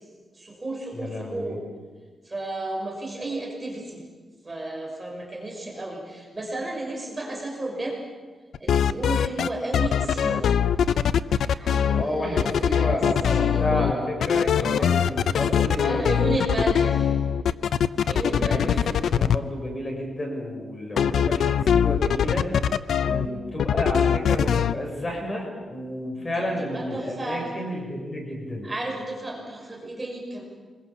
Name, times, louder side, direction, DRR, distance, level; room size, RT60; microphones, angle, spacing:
voice 1, 0.3-1.6 2.2-4.0 4.4-8.0 8.6-10.4 11.5-12.9 13.4-13.9 14.5-15.0 15.8-17.2 18.1-18.9 23.0-23.4 26.2-27.5 28.6-30.4, right 2 dB, 20° right, 1 dB, 6.1 m, -33 dB
voice 2, 0.9-1.5 11.9-16.8 18.3-22.5 23.0-28.7, left 1 dB, 25° left, 1 dB, 6.6 m, -31 dB
sound 1, 8.5-9.5 9.7-12.0 12.4-13.9 14.2-19.4 21.0-23.3 23.6-24.7, left 8 dB, 80° left, 0.7 m, -22 dB
26.0 x 22.0 x 7.3 m, 1.4 s
wide cardioid pair, 115°, 0 cm